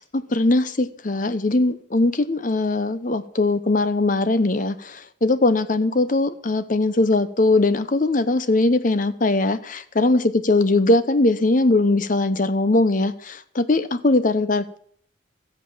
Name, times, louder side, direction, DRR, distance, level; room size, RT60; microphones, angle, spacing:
voice 1, 0.0-14.8, left 2 dB, 40° left, 13 dB, 0.8 m, -20 dB
14.0 x 7.6 x 7.1 m, 0.63 s
head